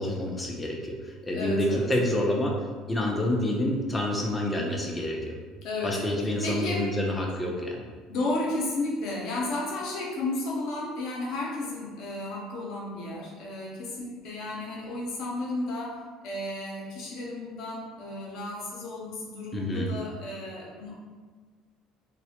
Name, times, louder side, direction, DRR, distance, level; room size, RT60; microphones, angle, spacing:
voice 1, 0.0-2.5 2.9-5.4 5.8-7.8 19.5-19.9, left 1 dB, 15° left, -1 dB, 0.5 m, -28 dB
voice 2, 1.2-1.9 5.6-6.9 8.1-21.0, left 2 dB, 65° left, -3 dB, 0.7 m, -33 dB
2.2 x 2.0 x 2.8 m, 1.5 s
supercardioid pair, 80°, 0 cm